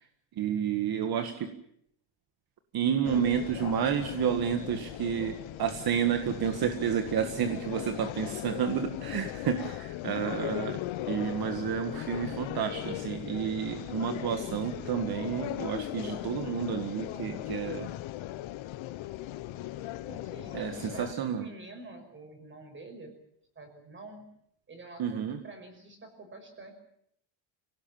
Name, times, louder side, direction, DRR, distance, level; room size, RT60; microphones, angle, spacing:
voice 1, 0.4-1.5 2.7-10.8 11.1-17.9 20.5-21.5 25.0-25.4, right 8 dB, 50° right, 7 dB, 1.8 m, -30 dB
sound 1, 3.0-21.1, left 15 dB, 85° left, 1.2 m, -38 dB
voice 2, 8.5-8.9 15.7-15.9 20.1-23.2 23.6-24.3 24.7-26.7, right 2 dB, 25° right, 5 dB, 5.8 m, -47 dB
26.0 x 18.0 x 9.0 m, 0.72 s
cardioid pair, 175°, 46 cm